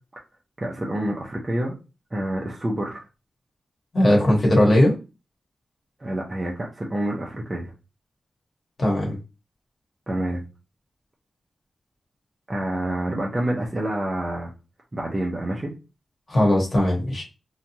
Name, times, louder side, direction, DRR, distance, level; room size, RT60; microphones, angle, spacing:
voice 1, 0.6-1.8 2.1-3.0 6.0-7.7 10.1-10.4 12.5-14.5 14.9-15.7, right 1 dB, 20° right, -2 dB, 0.5 m, -27 dB
voice 2, 3.9-4.9 8.8-9.2 16.3-17.2, left 1 dB, 40° left, -1 dB, 1.1 m, -18 dB
2.8 x 2.2 x 2.7 m, 0.29 s
wide cardioid pair, 140°, 0 cm